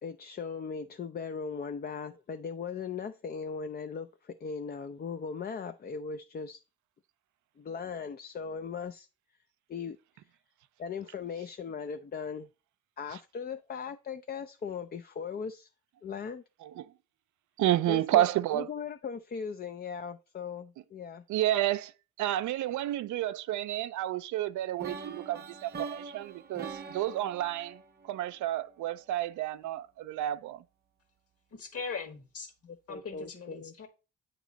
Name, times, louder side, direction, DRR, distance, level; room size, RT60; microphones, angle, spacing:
voice 1, 0.0-6.6 7.6-9.1 9.7-10.0 10.8-12.5 13.0-15.7 16.0-16.4 17.9-18.3 18.5-21.2 32.6-33.7, left 6 dB, 30° left, 0.4 m, -38 dB
voice 2, 17.6-18.7 21.3-21.9 22.2-30.6, right 14 dB, 75° right, 0.5 m, -30 dB
sound 1, 24.8-28.8, right 5 dB, 35° right, 0.8 m, -43 dB
voice 3, 31.5-32.5 32.9-33.9, left 5 dB, 50° left, 1.6 m, -40 dB
8.1 x 3.0 x 5.0 m
cardioid pair, 90°, 30 cm